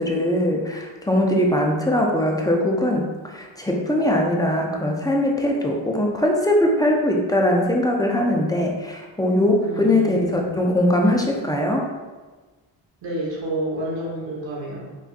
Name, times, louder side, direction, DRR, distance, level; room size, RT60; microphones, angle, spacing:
voice 1, 0.0-11.9, left 1 dB, 10° left, 0 dB, 0.6 m, -21 dB
voice 2, 9.6-10.6 11.0-11.2 13.0-14.9, right 1 dB, 70° right, -4 dB, 1.4 m, -30 dB
6.1 x 2.5 x 2.5 m, 1.3 s
cardioid pair, 80°, 45 cm